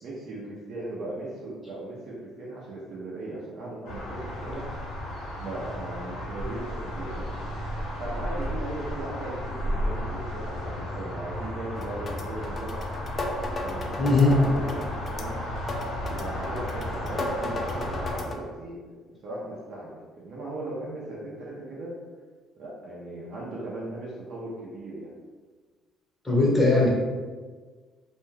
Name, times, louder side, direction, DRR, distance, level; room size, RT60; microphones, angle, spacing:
voice 1, 0.0-4.7 5.4-7.4 8.0-12.9 13.6-15.3 16.1-18.8 19.1-22.0 22.6-25.1, right 2 dB, 60° right, -6 dB, 0.6 m, -38 dB
sound 1, 3.8-18.2, left 1 dB, 80° left, 0.8 m, -33 dB
sound 2, 11.7-18.3, left 2 dB, 35° left, 0.3 m, -36 dB
voice 2, 14.0-14.4 26.2-26.9, left 2 dB, 10° left, -4 dB, 0.8 m, -19 dB
2.6 x 2.2 x 3.2 m, 1.4 s
cardioid pair, 120°, 0 cm